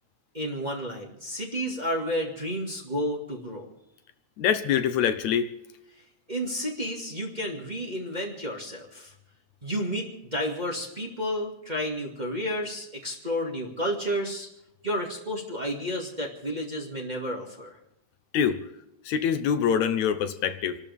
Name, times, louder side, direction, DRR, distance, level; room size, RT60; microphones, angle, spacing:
voice 1, 0.3-3.7 6.3-9.1 9.6-14.5 14.8-17.7, equal, 15° right, -1 dB, 2.0 m, -31 dB
voice 2, 4.4-5.5 18.3-18.6 19.1-20.8, left 8 dB, 75° left, 9 dB, 2.3 m, -24 dB
28.0 x 12.5 x 3.6 m, 0.84 s
omnidirectional pair, 3.3 m